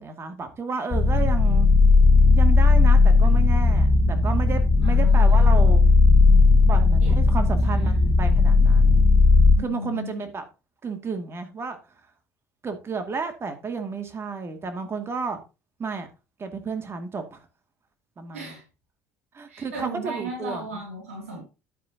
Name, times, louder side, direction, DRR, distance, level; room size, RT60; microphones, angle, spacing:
voice 1, 0.0-1.7 2.3-5.8 6.7-9.1 9.6-10.4 10.8-11.8 12.6-15.4 15.8-16.1 16.4-17.4 18.2-18.5 19.3-20.7, right 4 dB, 35° right, 2.3 m, -32 dB
sound 1, 0.9-9.6, left 3 dB, 40° left, 1.4 m, -16 dB
voice 2, 4.8-5.5 7.0-7.2 7.6-8.0 9.5-10.2 18.3-18.6 19.5-21.4, right 1 dB, 85° right, 2.7 m, -36 dB
10.5 x 9.5 x 2.8 m
hypercardioid pair, 60°, 7 cm